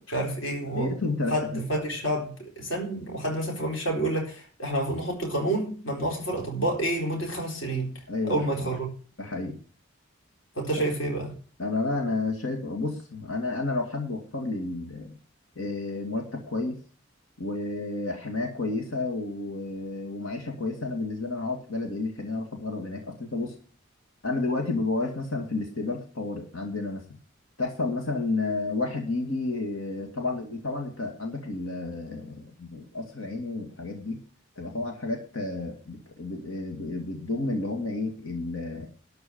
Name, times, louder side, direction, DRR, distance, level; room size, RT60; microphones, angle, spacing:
voice 1, 0.1-0.9 1.3-8.9 10.6-11.3, right 1 dB, 65° left, 4.0 m, -29 dB
voice 2, 0.7-1.6 8.1-8.7 9.2-9.6 11.6-15.1 15.6-16.8 17.4-23.5 24.2-27.0 27.6-34.2 34.6-38.9, left 3 dB, 85° left, 2.3 m, -31 dB
12.5 x 4.8 x 8.5 m
head